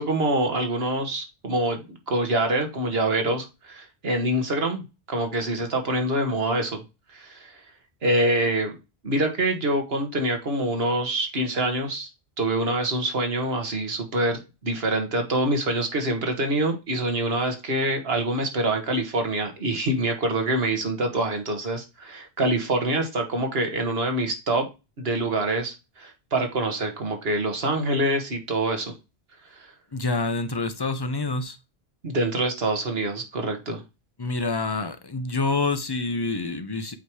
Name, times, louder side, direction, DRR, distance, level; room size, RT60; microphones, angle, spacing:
voice 1, 0.0-4.8 5.1-6.8 7.1-7.6 8.0-8.7 9.0-12.1 12.4-24.7 25.0-28.9 29.6-29.7 32.0-33.8, right 1 dB, 70° right, 1.6 m, -25 dB
voice 2, 29.9-31.6 34.2-36.9, left 3 dB, 25° left, 0.6 m, -27 dB
8.1 x 3.0 x 4.8 m
omnidirectional pair, 1.1 m